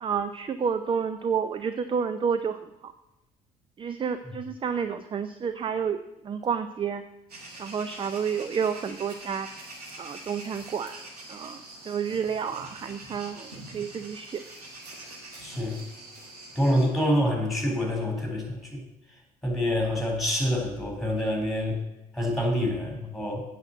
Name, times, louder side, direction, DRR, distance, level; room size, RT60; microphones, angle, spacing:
voice 1, 0.0-2.9 3.8-7.0 7.6-9.5 10.0-14.4, right 6 dB, 25° right, 10 dB, 0.6 m, -30 dB
sound 1, 7.3-16.9, right 2 dB, 80° right, 1.6 m, -44 dB
voice 2, 15.4-15.8 16.6-18.8 19.4-21.8 22.1-23.4, equal, ahead, 1 dB, 3.8 m, -26 dB
8.2 x 6.7 x 7.9 m, 0.92 s
figure-of-eight pair, 55°, 19 cm